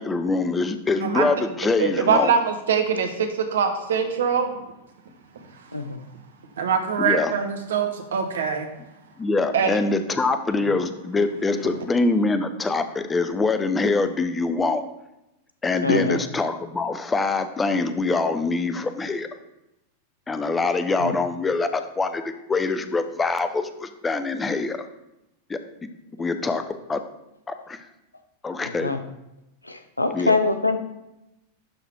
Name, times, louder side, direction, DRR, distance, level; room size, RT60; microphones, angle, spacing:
voice 1, 0.0-2.3 7.0-7.3 9.2-14.8 15.6-19.3 20.3-22.2 22.5-24.9 25.5-25.6 26.2-27.0 27.5-27.8 28.4-28.9 30.1-30.4, left 3 dB, 15° left, 9 dB, 0.7 m, -24 dB
voice 2, 1.8-4.6 6.6-8.7 9.5-9.8 11.6-11.7, right 6 dB, 65° right, 6 dB, 1.3 m, -23 dB
voice 3, 15.8-16.2 21.0-21.1 28.8-29.0 29.7-30.8, left 3 dB, 85° left, 8 dB, 0.7 m, -23 dB
11.5 x 4.0 x 4.6 m, 0.90 s
figure-of-eight pair, 90°, 0 cm